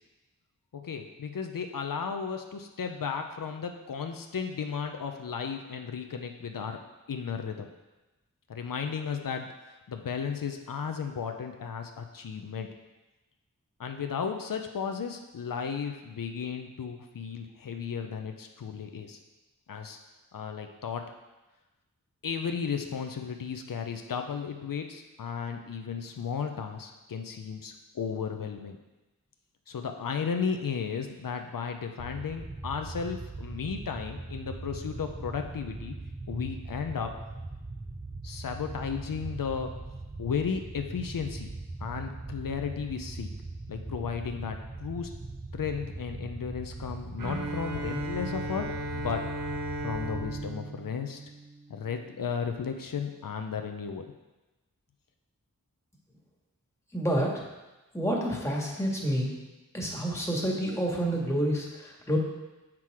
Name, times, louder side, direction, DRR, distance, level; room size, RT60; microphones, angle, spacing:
voice 1, 0.7-6.8 7.1-7.7 8.5-9.5 9.9-12.7 13.8-19.2 19.7-20.0 20.3-21.0 22.2-28.8 29.7-36.0 36.3-37.2 38.2-39.7 40.2-41.5 41.8-43.3 43.7-45.1 45.5-49.2 49.8-51.2 51.7-54.0, left 6 dB, 90° left, 5 dB, 0.6 m, -34 dB
sound 1, 32.0-50.5, right 2 dB, 20° right, 0.7 m, -40 dB
Bowed string instrument, 47.2-52.0, right 1 dB, 85° right, 1.1 m, -36 dB
voice 2, 56.9-57.3 57.9-59.3 59.7-62.2, equal, 10° left, -2 dB, 1.8 m, -28 dB
7.6 x 6.0 x 4.8 m, 1.1 s
wide cardioid pair, 70°, 32 cm